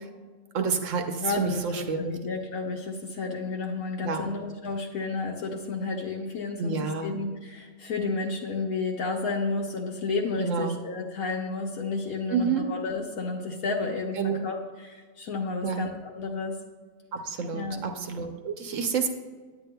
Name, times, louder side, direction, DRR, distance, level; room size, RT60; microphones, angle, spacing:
voice 1, 0.5-2.1 4.0-4.3 6.6-7.1 10.4-10.8 12.3-12.7 14.2-14.3 15.6-15.9 17.1-19.1, right 5 dB, 60° right, 5 dB, 1.0 m, -29 dB
voice 2, 1.2-16.6 17.5-17.9, left 3 dB, 70° left, -1 dB, 1.2 m, -32 dB
9.9 x 9.0 x 2.2 m, 1.4 s
omnidirectional pair, 1.6 m